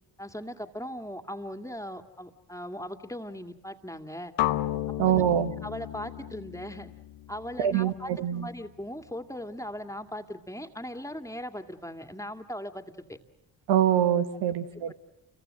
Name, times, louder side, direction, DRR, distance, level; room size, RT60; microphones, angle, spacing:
voice 1, 0.2-4.3 5.0-5.2 5.6-6.9 7.3-13.2 14.5-14.6 14.9-15.0, equal, 5° left, 6 dB, 2.3 m, -39 dB
sound 1, 4.4-8.3, left 15 dB, 75° left, 1.1 m, -33 dB
voice 2, 5.0-5.5 7.6-8.5 13.7-14.9, right 10 dB, 80° right, 9 dB, 1.4 m, -24 dB
29.5 x 23.5 x 7.8 m, 0.84 s
supercardioid pair, 50°, 42 cm